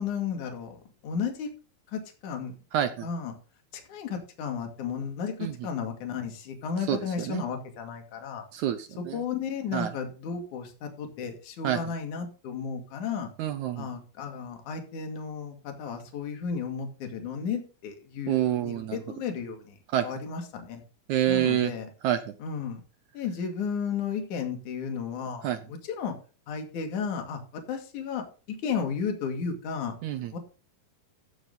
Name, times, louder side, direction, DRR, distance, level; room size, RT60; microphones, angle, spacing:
voice 1, 0.0-1.5 1.9-2.5 3.0-3.3 3.7-8.4 9.0-13.3 13.8-19.8 20.0-20.8 21.3-21.9 22.4-22.8 23.1-26.1 26.5-27.4 27.7-29.9 30.3-30.4, left 6 dB, 60° left, 4 dB, 3.5 m, -33 dB
voice 2, 2.7-3.1 5.4-5.5 6.9-7.4 8.5-9.2 9.7-9.9 11.6-11.8 13.4-13.9 18.3-19.0 19.9-20.1 21.1-21.7 22.0-22.2 25.4-25.6 30.0-30.4, right 11 dB, 80° right, 10 dB, 1.7 m, -27 dB
15.5 x 6.2 x 3.8 m, 0.35 s
omnidirectional pair, 4.2 m